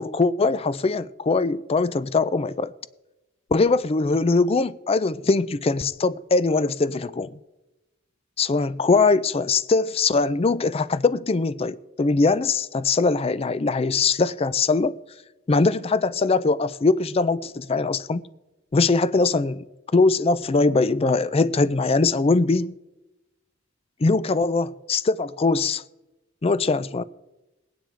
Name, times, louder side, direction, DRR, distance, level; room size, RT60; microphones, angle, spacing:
voice 1, 0.0-2.7 3.5-7.3 8.4-14.9 15.5-18.3 18.7-19.6 19.9-22.7 24.0-25.8 26.4-27.0, left 3 dB, 30° left, 0.4 m, -21 dB
20.0 x 9.4 x 4.5 m
head